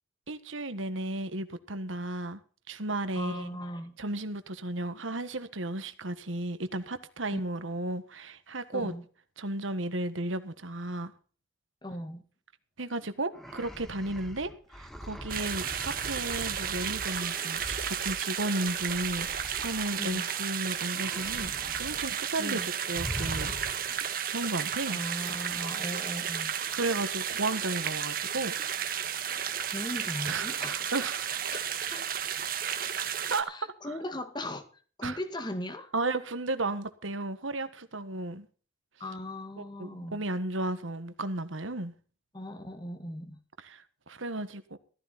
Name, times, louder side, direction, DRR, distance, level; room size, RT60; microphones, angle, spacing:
voice 1, 0.3-2.4 2.7-3.5 4.0-8.9 9.4-11.1 12.8-14.5 14.8-23.5 24.3-25.0 26.7-28.5 30.2-31.4 33.3-33.7 35.0-35.2 35.9-38.5 39.6-41.9 43.6-44.8, right 2 dB, 90° right, 1.6 m, -34 dB
voice 2, 3.2-3.9 7.3-7.4 8.7-9.0 11.8-12.2 20.0-20.3 22.4-22.7 24.9-26.6 29.7-30.8 31.5-31.6 31.9-32.0 32.8-32.9 33.5-34.6 35.0-35.9 39.0-40.2 42.3-43.4, left 1 dB, 20° left, 1.9 m, -38 dB
sound 1, 13.3-20.5 20.9-22.2 22.4-22.6 22.9-24.1, equal, ahead, 1.5 m, -42 dB
sound 2, 15.3-33.4, right 8 dB, 45° right, 1.7 m, -33 dB
15.0 x 14.5 x 4.2 m
head